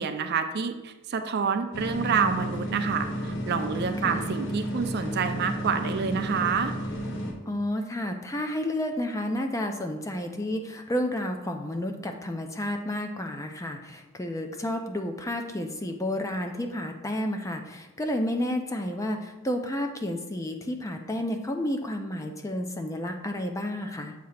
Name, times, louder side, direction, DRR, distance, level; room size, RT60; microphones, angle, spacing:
voice 1, 0.0-6.7, right 6 dB, 50° right, 8 dB, 0.4 m, -28 dB
sound 1, 1.7-7.3, equal, 60° left, 1.0 m, -32 dB
voice 2, 7.5-24.1, left 1 dB, 15° left, 4 dB, 0.4 m, -31 dB
7.4 x 2.8 x 5.7 m, 1.1 s
head